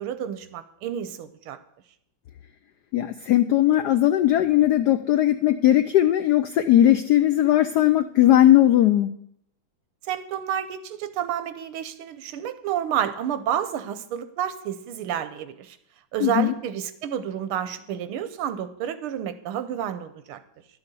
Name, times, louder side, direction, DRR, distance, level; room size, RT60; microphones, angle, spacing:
voice 1, 0.0-1.6 10.1-15.8 16.1-20.4, right 9 dB, 85° right, 11 dB, 1.7 m, -30 dB
voice 2, 2.9-9.2 16.2-16.5, left 13 dB, 80° left, 11 dB, 0.9 m, -19 dB
11.5 x 6.8 x 6.9 m, 0.73 s
omnidirectional pair, 2.3 m